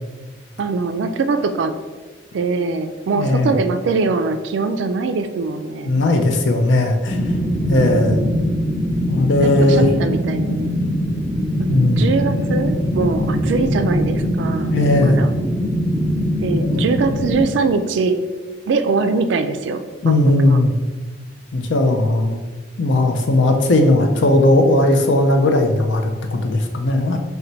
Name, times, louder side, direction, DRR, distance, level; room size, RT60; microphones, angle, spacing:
voice 1, 0.6-1.7 2.3-6.0 7.7-8.5 9.4-10.7 11.6-14.7 15.0-15.3 16.4-18.2 18.7-20.6, right 4 dB, 70° right, 9 dB, 0.3 m, -22 dB
voice 2, 3.2-3.5 5.8-7.2 7.7-8.3 9.1-9.9 11.7-12.1 14.7-15.2 16.6-16.8 20.0-20.7 21.5-22.4 22.8-27.2, left 2 dB, 70° left, 4 dB, 0.5 m, -17 dB
sound 1, 7.1-17.4, equal, 10° left, 0.4 m, -22 dB
4.3 x 2.2 x 3.9 m, 1.3 s
head